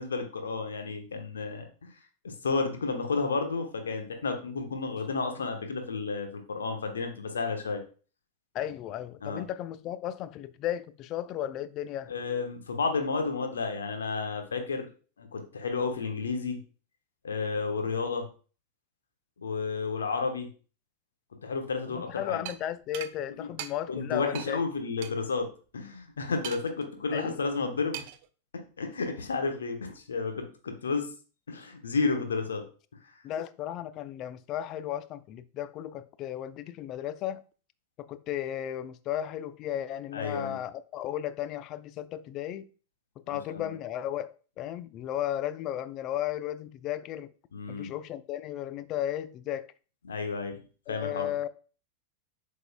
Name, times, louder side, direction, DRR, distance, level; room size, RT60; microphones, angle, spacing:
voice 1, 0.0-1.9 2.2-7.8 9.2-9.4 12.1-14.9 15.2-16.6 17.2-18.3 19.4-20.5 21.4-22.4 23.4-23.5 23.9-28.0 28.5-31.1 31.5-32.6 40.1-40.6 43.3-43.7 47.5-47.9 50.0-51.3, left 4 dB, 70° left, 1.1 m, -32 dB
voice 2, 8.5-12.1 21.9-24.6 27.1-27.6 33.2-37.4 38.0-42.7 43.3-47.3 47.7-49.7 50.9-51.5, left 11 dB, 35° left, 0.4 m, -35 dB
sound 1, 22.5-22.6 22.9-23.1 23.6-23.7 24.4-24.5 25.0-25.1 26.4-26.8 27.9-28.3, right 12 dB, 50° right, 0.4 m, -38 dB
7.8 x 5.5 x 2.3 m
figure-of-eight pair, 90°, 0 cm